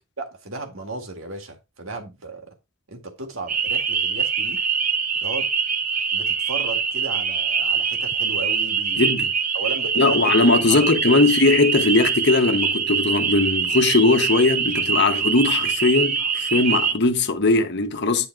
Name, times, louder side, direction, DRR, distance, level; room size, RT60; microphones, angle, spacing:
voice 1, 0.2-2.5 2.9-4.6 5.2-5.5 6.1-9.1 9.5-10.9, right 3 dB, 75° right, 1.9 m, -35 dB
sound 1, 3.5-16.9, right 6 dB, 40° right, 0.8 m, -24 dB
voice 2, 9.0-9.3 10.0-18.3, left 3 dB, 55° left, 1.1 m, -19 dB
10.0 x 3.7 x 4.6 m
head